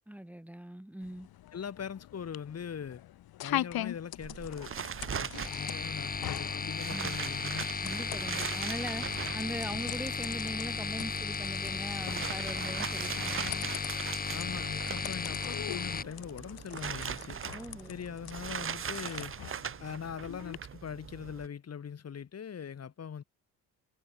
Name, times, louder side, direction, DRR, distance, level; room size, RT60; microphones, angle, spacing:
voice 1, 0.1-1.3 6.8-7.2 7.8-13.7 17.5-17.9, right 1 dB, 5° right, 2.4 m, -41 dB
sound 1, 1.0-20.6, left 13 dB, 75° left, 6.5 m, -43 dB
voice 2, 1.5-3.0 3.4-4.7 5.1-7.7 14.3-17.4 17.9-19.3 19.8-23.2, left 7 dB, 40° left, 2.5 m, -41 dB
sound 2, 4.2-21.5, right 7 dB, 35° right, 1.0 m, -41 dB
sound 3, 5.3-16.0, left 5 dB, 25° left, 1.2 m, -35 dB
cardioid pair, 90°, 37 cm